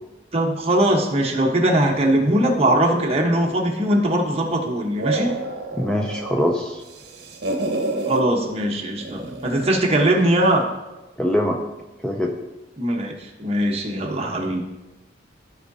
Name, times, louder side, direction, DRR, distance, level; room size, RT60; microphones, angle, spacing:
voice 1, 0.3-5.4 8.0-10.7 12.8-14.6, right 1 dB, 35° right, 0 dB, 1.1 m, -20 dB
sound 1, 2.6-4.4 4.8-6.5 6.8-8.2 9.0-9.8, right 2 dB, 60° right, 1.1 m, -30 dB
voice 2, 5.7-6.8 11.2-11.6 12.0-12.3, left 1 dB, 5° left, 1 dB, 0.4 m, -23 dB
13.0 x 4.8 x 2.7 m, 1.1 s
head